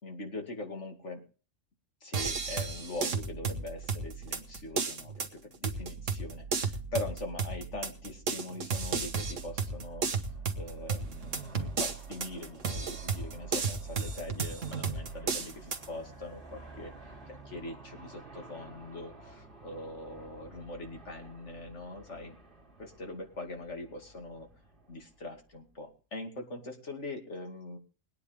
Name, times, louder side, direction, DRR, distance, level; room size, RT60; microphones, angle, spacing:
voice 1, 0.0-1.2 2.0-10.1 10.6-22.3 22.8-24.5 24.9-27.8, left 2 dB, 65° left, 3 dB, 2.8 m, -42 dB
sound 1, 2.1-15.9, right 5 dB, 75° right, 1.7 m, -34 dB
Aircraft, 8.6-25.7, right 2 dB, 45° right, 2.3 m, -53 dB
21.0 x 9.6 x 3.4 m, 0.35 s
omnidirectional pair, 1.3 m